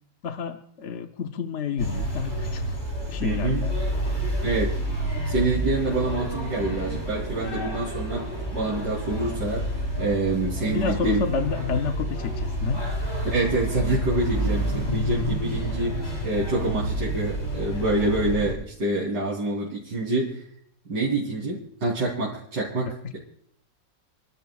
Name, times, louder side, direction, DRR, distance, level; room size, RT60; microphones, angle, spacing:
voice 1, 0.2-2.8 3.1-3.7 10.7-12.8 22.9-23.2, left 6 dB, 55° left, 6 dB, 0.9 m, -30 dB
sound 1, 1.8-18.5, right 1 dB, 40° left, 6.2 m, -29 dB
voice 2, 3.2-3.7 4.4-4.8 5.2-9.7 10.0-11.2 13.2-20.4 20.9-23.2, right 2 dB, 75° right, -7 dB, 3.8 m, -27 dB
29.5 x 12.5 x 2.3 m, 0.72 s
omnidirectional pair, 1.9 m